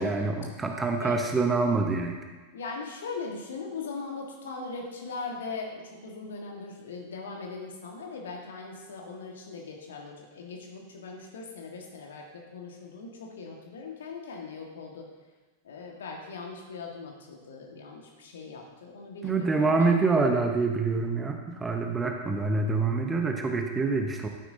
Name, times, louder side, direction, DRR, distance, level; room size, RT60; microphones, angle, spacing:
voice 1, 0.0-2.2 19.2-24.3, right 3 dB, 15° right, 3 dB, 1.0 m, -26 dB
voice 2, 2.5-15.1 15.6-19.9, left 4 dB, 60° left, 1 dB, 1.7 m, -40 dB
11.5 x 9.6 x 2.8 m, 1.2 s
figure-of-eight pair, 90°, 0 cm